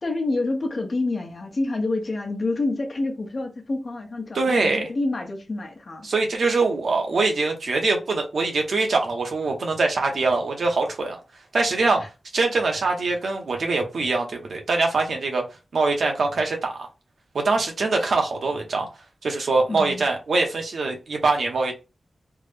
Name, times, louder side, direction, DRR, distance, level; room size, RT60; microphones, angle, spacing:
voice 1, 0.0-6.1 12.0-12.1 19.7-20.1, left 2 dB, 45° left, 0.9 m, -28 dB
voice 2, 4.3-4.9 6.0-11.2 11.5-12.0 12.3-15.4 15.7-16.9 17.3-18.9 19.2-21.7, right 3 dB, 80° right, 0.9 m, -23 dB
3.5 x 2.1 x 3.3 m
wide cardioid pair, 130°, 0 cm